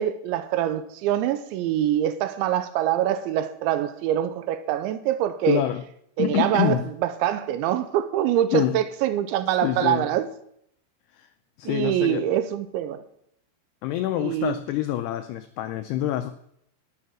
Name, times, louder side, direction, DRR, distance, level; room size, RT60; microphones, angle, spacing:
voice 1, 0.0-5.7 6.2-6.8 7.0-10.3 11.7-13.0 14.2-14.6, right 11 dB, 80° right, 2.9 m, -24 dB
voice 2, 5.5-5.8 6.2-6.8 8.5-8.8 9.6-10.1 11.1-11.3 11.6-12.2 13.8-16.3, left 13 dB, 90° left, 2.3 m, -26 dB
19.0 x 6.6 x 6.1 m
omnidirectional pair, 5.5 m